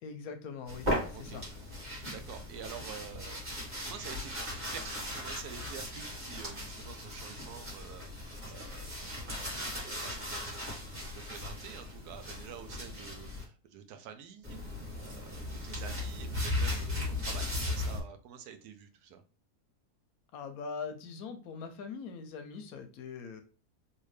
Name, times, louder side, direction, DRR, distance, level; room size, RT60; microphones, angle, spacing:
voice 1, 0.0-0.9 1.2-1.4 16.9-17.1 20.3-23.4, left 5 dB, 70° left, 7 dB, 1.0 m, -42 dB
sound 1, 0.7-13.4 14.4-18.0, left 1 dB, 30° right, 1.6 m, -37 dB
voice 2, 2.1-4.3 4.7-19.2, right 8 dB, 80° right, 8 dB, 1.1 m, -48 dB
3.4 x 2.7 x 3.2 m, 0.35 s
omnidirectional pair, 1.7 m